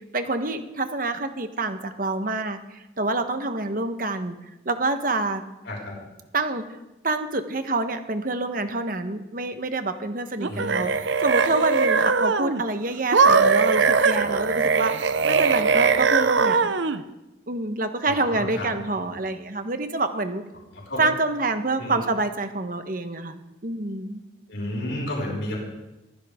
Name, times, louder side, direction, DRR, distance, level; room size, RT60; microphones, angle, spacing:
voice 1, 0.1-4.4 4.6-5.4 6.3-6.6 7.0-16.7 17.5-20.4 21.0-24.2, right 2 dB, 45° right, 8 dB, 1.1 m, -27 dB
voice 2, 5.6-6.0 10.5-10.8 18.0-18.7 19.1-19.2 20.7-21.0 21.8-22.0 24.5-25.6, left 1 dB, 70° left, -3 dB, 5.6 m, -32 dB
sound 1, 10.4-12.6 13.1-17.0, right 4 dB, 70° right, 0.7 m, -20 dB
23.0 x 15.5 x 3.7 m, 0.99 s
head